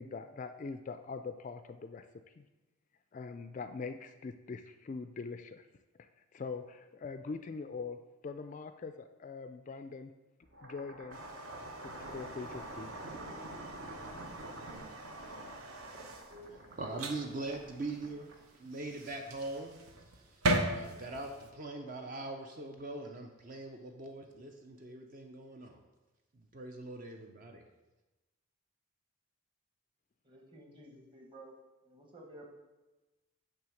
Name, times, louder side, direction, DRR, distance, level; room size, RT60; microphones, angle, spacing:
voice 1, 0.0-2.1 2.4-2.5 3.1-5.7 6.0-10.1 10.6-11.2 11.8-12.9, left 4 dB, 35° left, 9 dB, 0.3 m, -43 dB
sound 1, 10.4-18.7, right 1 dB, 55° right, 1.0 m, -47 dB
sound 2, 11.1-21.5, right 1 dB, 90° right, 0.8 m, -40 dB
voice 2, 16.3-25.8 26.3-27.6, right 2 dB, 40° right, 3 dB, 0.5 m, -42 dB
voice 3, 30.2-31.5 31.8-32.5, right 1 dB, 20° right, 0 dB, 1.3 m, -53 dB
8.7 x 3.5 x 6.2 m, 1.1 s
head